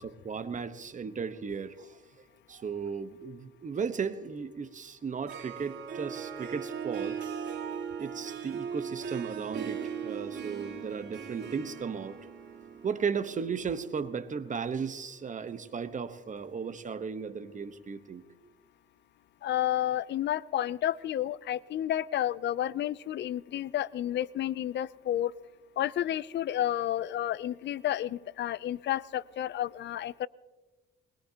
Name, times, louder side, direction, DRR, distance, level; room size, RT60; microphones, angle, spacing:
voice 1, 0.0-2.0 2.5-7.2 8.0-12.2 12.8-18.2, right 6 dB, 40° right, 11 dB, 1.2 m, -35 dB
Harp, 5.0-14.0, right 7 dB, 60° right, 3.1 m, -39 dB
voice 2, 19.4-25.3 25.8-30.3, left 12 dB, 65° left, 20 dB, 0.5 m, -31 dB
21.5 x 20.5 x 2.9 m, 1.2 s
cardioid pair, 90°, 20 cm